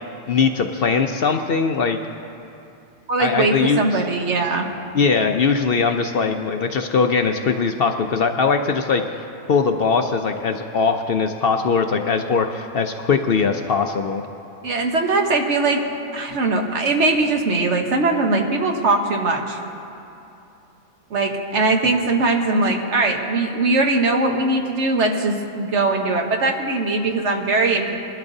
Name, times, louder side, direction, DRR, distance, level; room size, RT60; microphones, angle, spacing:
voice 1, 0.3-2.0 3.2-4.0 4.9-9.0 9.5-14.2, left 5 dB, 60° left, 5 dB, 0.7 m, -20 dB
voice 2, 3.1-4.7 14.6-15.8 16.1-19.6 21.1-27.9, right 3 dB, 65° right, 2 dB, 1.3 m, -20 dB
21.5 x 12.0 x 2.7 m, 2.8 s
omnidirectional pair, 1.3 m